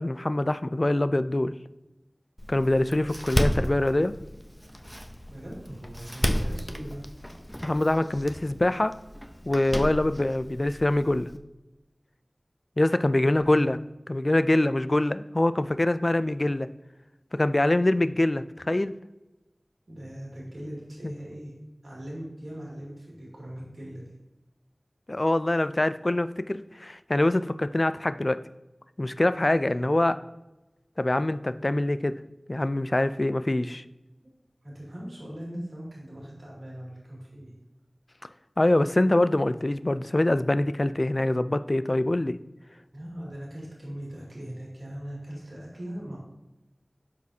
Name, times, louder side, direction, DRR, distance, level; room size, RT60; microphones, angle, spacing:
voice 1, 0.0-1.5 2.5-4.1 7.6-8.9 9.5-11.3 12.8-13.8 14.1-16.7 17.3-19.0 21.0-21.1 25.1-28.4 29.0-30.2 31.0-32.1 32.5-33.8 38.6-42.4, left 1 dB, 45° left, 13 dB, 0.3 m, -24 dB
Door, 2.4-11.4, equal, 5° left, 0.7 m, -33 dB
voice 2, 5.3-7.1 13.5-13.7 19.9-21.5 21.8-24.0 34.2-34.3 34.6-37.5 42.9-46.2, equal, 90° right, -5 dB, 2.5 m, -40 dB
12.0 x 4.1 x 2.8 m, 0.99 s
wide cardioid pair, 45°, 0 cm